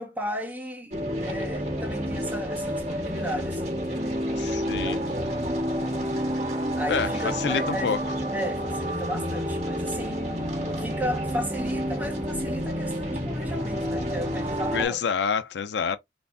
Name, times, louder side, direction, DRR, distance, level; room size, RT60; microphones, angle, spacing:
voice 1, 0.0-4.2 4.7-5.5 6.7-15.0, equal, 10° right, 1.5 m, -35 dB
sound 1, 0.9-14.8, equal, 40° right, 1.8 m, -29 dB
voice 2, 4.4-5.0 6.9-7.1 7.4-8.0 14.7-16.0, left 6 dB, 70° left, 0.5 m, -27 dB
4.1 x 3.3 x 2.7 m
head